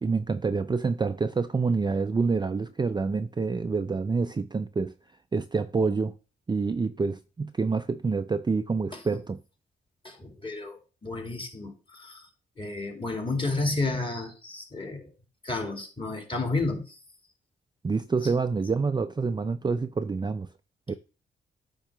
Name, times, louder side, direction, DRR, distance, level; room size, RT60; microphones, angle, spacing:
voice 1, 0.0-4.9 5.3-6.1 6.5-9.4 17.8-20.5 20.9-21.0, right 4 dB, 20° right, 0.4 m, -27 dB
voice 2, 10.0-12.2 12.6-15.1 15.4-16.8, left 3 dB, 25° left, 2.2 m, -31 dB
8.6 x 2.9 x 5.8 m
supercardioid pair, 55°, 21 cm